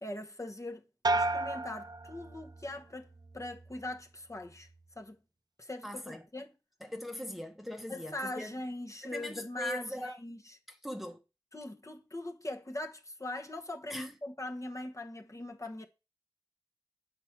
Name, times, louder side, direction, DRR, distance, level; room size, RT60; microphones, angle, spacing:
voice 1, 0.0-0.8 1.1-4.7 5.0-5.2 5.6-6.5 7.9-10.6 11.5-15.9, left 1 dB, 30° left, 1.1 m, -41 dB
sound 1, 1.0-2.8 3.2-3.8, right 2 dB, 40° right, 0.4 m, -33 dB
voice 2, 5.8-6.3 6.8-8.5 9.0-10.1 10.7-11.2 13.9-14.1, left 1 dB, ahead, 1.0 m, -41 dB
8.0 x 4.5 x 5.8 m
wide cardioid pair, 55°, 10 cm